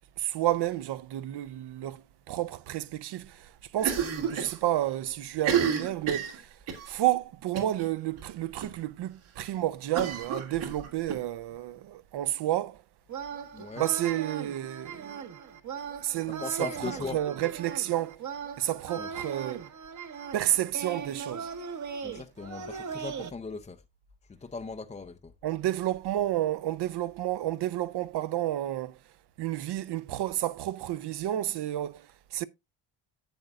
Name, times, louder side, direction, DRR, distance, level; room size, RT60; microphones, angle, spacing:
voice 1, 0.2-4.0 4.3-6.5 6.9-12.8 13.8-15.2 16.0-16.7 17.1-18.2 18.6-19.7 20.3-21.5 25.4-29.0 29.4-32.4, right 13 dB, 55° right, 0.6 m, -30 dB
Cough, 3.8-4.6 4.9-5.0 5.3-6.9 7.6-7.9 8.2-8.3 8.6-8.7 9.9-11.2, right 7 dB, 75° right, 2.5 m, -30 dB
sound 1, 13.1-23.3, right 6 dB, 35° right, 0.9 m, -39 dB
voice 2, 13.5-13.9 16.4-17.2 19.0-19.1 22.0-23.8 24.4-25.3, left 4 dB, 15° left, 0.4 m, -38 dB
10.5 x 7.8 x 2.4 m
cardioid pair, 115°, 48 cm